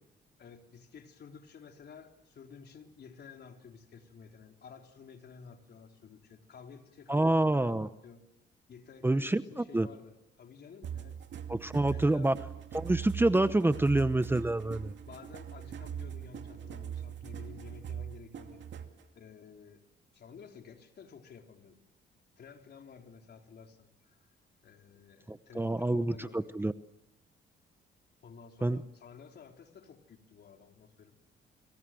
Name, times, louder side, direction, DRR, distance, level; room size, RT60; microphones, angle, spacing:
voice 1, 0.4-8.2 8.7-11.2 11.9-12.3 15.1-18.7 19.1-19.8 20.1-21.8 22.4-24.2 24.6-26.5 28.2-31.1, left 6 dB, 55° left, 3 dB, 3.9 m, -52 dB
voice 2, 7.1-7.9 9.0-9.9 11.5-12.3 12.7-14.9 25.3-26.7 28.6-28.8, right 2 dB, 10° right, 12 dB, 0.9 m, -27 dB
sound 1, 10.8-19.0, right 8 dB, 65° right, 2.4 m, -41 dB
29.0 x 26.0 x 7.7 m, 0.91 s
cardioid pair, 90°, 20 cm